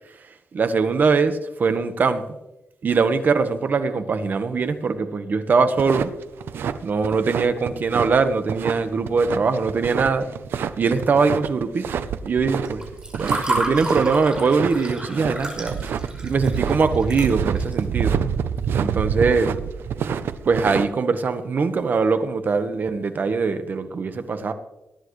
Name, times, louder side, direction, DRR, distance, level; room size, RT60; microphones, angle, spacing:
voice 1, 0.1-2.4 2.8-6.1 6.8-10.3 10.8-12.0 12.2-12.8 13.1-15.8 16.2-18.1 18.7-19.5 20.4-24.5, right 4 dB, 55° right, 9 dB, 1.3 m, -22 dB
sound 1, 5.8-20.9, right 7 dB, 90° right, 0.7 m, -27 dB
Water / Fill (with liquid), 12.7-17.8, right 1 dB, 20° right, 5.6 m, -30 dB
20.0 x 10.5 x 3.2 m, 0.93 s
cardioid pair, 90°, 4 cm